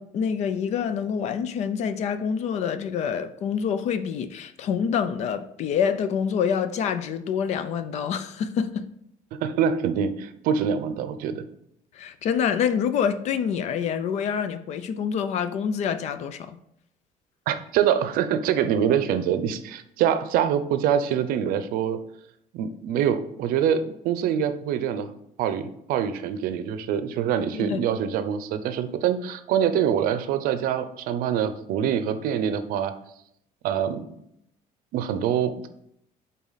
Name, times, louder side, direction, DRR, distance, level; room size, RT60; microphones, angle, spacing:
voice 1, 0.0-8.9 11.9-16.6 27.5-27.8, left 7 dB, 50° left, 0.5 m, -26 dB
voice 2, 9.4-11.4 17.5-22.0 22.5-25.1 25.4-32.9 33.6-34.1 34.9-35.7, right 8 dB, 75° right, 0.6 m, -25 dB
7.2 x 4.2 x 4.0 m
cardioid pair, 175°, 15 cm